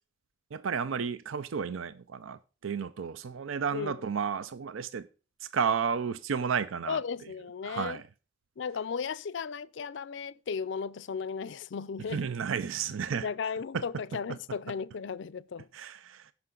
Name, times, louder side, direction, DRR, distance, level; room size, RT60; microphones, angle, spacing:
voice 1, 0.5-5.1 5.4-7.0 7.6-8.0 12.1-13.3 13.7-13.9 15.7-16.3, right 6 dB, 80° right, 0.5 m, -32 dB
voice 2, 6.9-8.0 8.6-12.3 13.2-15.7, left 6 dB, 60° left, 0.4 m, -35 dB
15.5 x 5.8 x 3.8 m
head